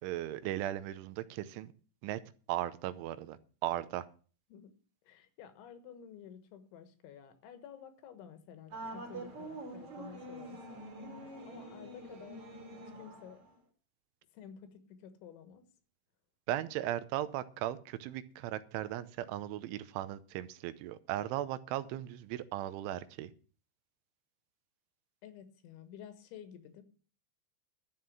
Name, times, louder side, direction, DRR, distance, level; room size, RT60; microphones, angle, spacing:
voice 1, 0.0-1.7 2.0-2.2 2.5-3.4 3.6-4.1 16.5-23.3, right 13 dB, 85° right, 14 dB, 3.2 m, -37 dB
voice 2, 5.1-10.9 11.5-12.5 12.7-13.4 14.3-15.6 25.2-26.8, left 8 dB, 80° left, 10 dB, 3.7 m, -52 dB
sound 1, 8.7-13.5, right 2 dB, 35° right, 3.6 m, -46 dB
12.5 x 7.8 x 7.4 m, 0.40 s
omnidirectional pair, 5.5 m